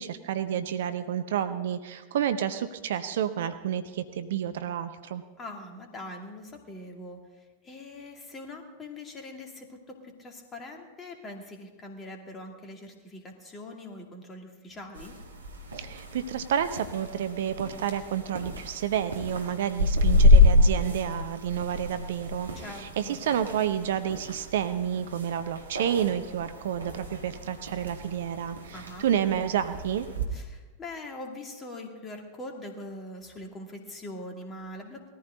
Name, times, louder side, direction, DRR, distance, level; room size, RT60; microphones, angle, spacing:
voice 1, 0.0-5.2 15.7-30.1, right 9 dB, 60° right, 10 dB, 0.7 m, -30 dB
voice 2, 5.4-7.2 7.6-15.2 22.6-23.2 28.7-29.1 30.3-35.2, left 1 dB, 20° left, 3 dB, 2.4 m, -42 dB
sound 1, 14.9-30.3, left 2 dB, 75° right, 1.7 m, -27 dB
19.5 x 14.0 x 3.8 m, 1.3 s
figure-of-eight pair, 90°, 0 cm